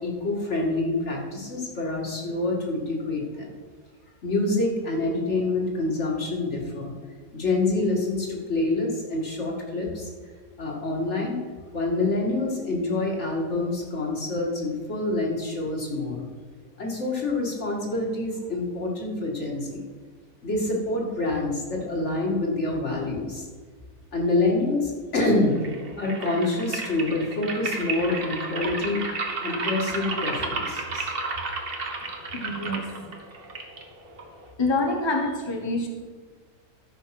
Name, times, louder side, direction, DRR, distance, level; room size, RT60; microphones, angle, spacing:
voice 1, 0.0-3.5 4.2-6.9 7.3-10.1 10.6-11.4 11.7-16.2 16.8-19.8 20.4-23.5 24.1-25.5 26.0-29.0 29.4-31.1, left 2 dB, 50° left, -1 dB, 2.4 m, -26 dB
sound 1, 25.5-34.5, right 3 dB, 45° right, 1.3 m, -33 dB
voice 2, 32.3-33.2 34.6-35.9, left 2 dB, 20° left, 2 dB, 0.9 m, -27 dB
13.0 x 5.7 x 5.9 m, 1.5 s
omnidirectional pair, 1.5 m